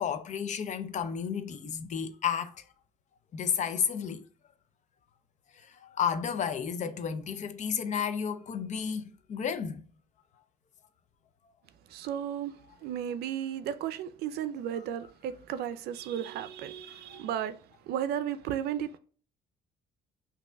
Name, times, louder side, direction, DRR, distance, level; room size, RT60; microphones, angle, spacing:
voice 1, 0.0-2.6 3.3-4.2 5.5-9.9 14.8-14.9 16.9-17.2, left 7 dB, 45° left, 0.5 m, -32 dB
voice 2, 11.9-12.5 12.8-17.5 17.9-19.0, right 10 dB, 75° right, 0.5 m, -34 dB
6.0 x 2.7 x 2.2 m
cardioid pair, 110°, 17 cm